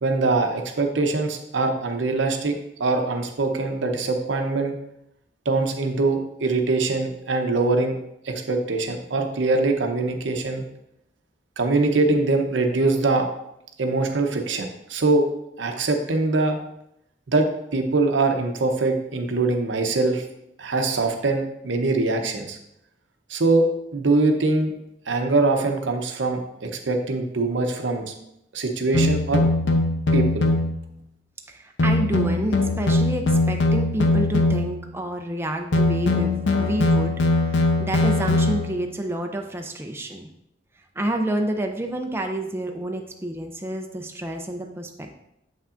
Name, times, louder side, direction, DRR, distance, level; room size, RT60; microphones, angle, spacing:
voice 1, 0.0-4.8 5.5-8.0 8.2-10.7 11.6-13.3 13.8-15.2 15.6-16.6 17.3-20.2 20.6-22.6 23.3-23.7 23.9-24.7 25.1-28.1 28.5-29.4 30.1-30.5, right 3 dB, 80° right, 4 dB, 0.8 m, -23 dB
sound 1, 28.9-30.8 31.8-34.9 35.7-38.9, left 2 dB, 80° left, 0.7 m, -21 dB
voice 2, 31.5-37.1 37.5-40.3 41.0-45.1, right 1 dB, 15° right, 3 dB, 0.5 m, -29 dB
7.4 x 5.6 x 2.5 m, 0.82 s
head